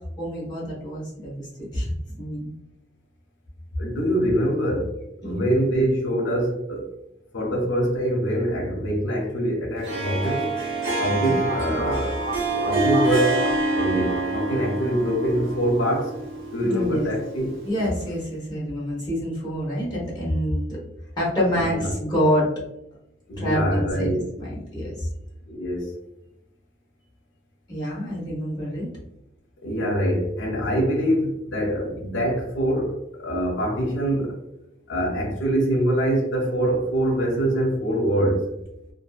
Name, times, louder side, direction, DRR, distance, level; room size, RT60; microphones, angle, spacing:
voice 1, 0.2-2.5 5.2-5.5 11.2-11.4 16.7-17.1 17.6-20.8 21.2-22.5 23.4-24.1 24.4-25.1 27.7-28.9, equal, 20° left, 1.0 m, -27 dB
voice 2, 3.8-6.9 7.3-10.5 11.0-12.2 12.7-16.1 16.5-17.5 21.6-21.9 23.3-24.3 25.5-26.0 29.6-34.4 34.9-38.5, right 1 dB, 85° left, 0.6 m, -24 dB
Harp, 9.8-18.0, right 2 dB, 90° right, 0.7 m, -27 dB
sound 1, 11.5-16.2, right 1 dB, 45° right, 0.8 m, -35 dB
2.6 x 2.3 x 2.3 m
head